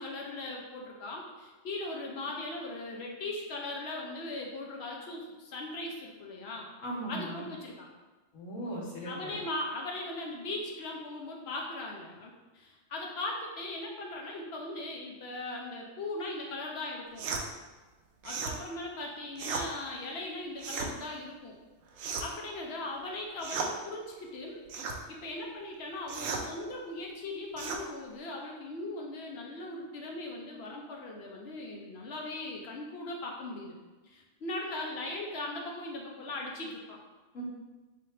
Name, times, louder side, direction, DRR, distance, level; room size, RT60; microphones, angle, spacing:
voice 1, 0.0-6.7 7.1-7.9 9.0-17.3 18.2-21.6 22.2-33.8 34.1-37.0, left 2 dB, 60° left, -1 dB, 1.0 m, -39 dB
voice 2, 6.8-7.4 8.3-9.3 37.3-37.4, right 1 dB, 80° left, -3 dB, 1.4 m, -38 dB
sound 1, 17.2-17.5 18.2-18.6 19.4-19.7 20.6-20.9 22.0-22.4 23.4-23.7 24.7-25.0 26.1-26.5 27.6-27.8, right 4 dB, 85° right, 1.0 m, -35 dB
4.0 x 2.5 x 4.2 m, 1.2 s
omnidirectional pair, 1.3 m